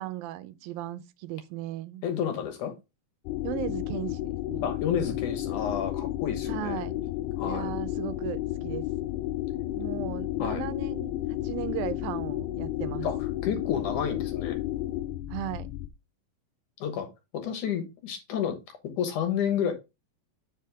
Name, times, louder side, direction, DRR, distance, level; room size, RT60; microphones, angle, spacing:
voice 1, 0.0-2.0 3.4-4.2 4.5-4.7 6.5-6.9 7.4-8.8 9.8-13.1 15.3-15.7, right 13 dB, 80° right, 2.4 m, -36 dB
voice 2, 2.0-2.7 4.6-6.8 7.4-7.7 10.4-10.7 13.0-14.6 16.8-17.1 17.3-18.6 18.8-19.7, left 8 dB, 65° left, 2.6 m, -30 dB
sound 1, 3.3-15.9, left 14 dB, 80° left, 1.9 m, -32 dB
8.6 x 5.5 x 3.5 m
omnidirectional pair, 4.2 m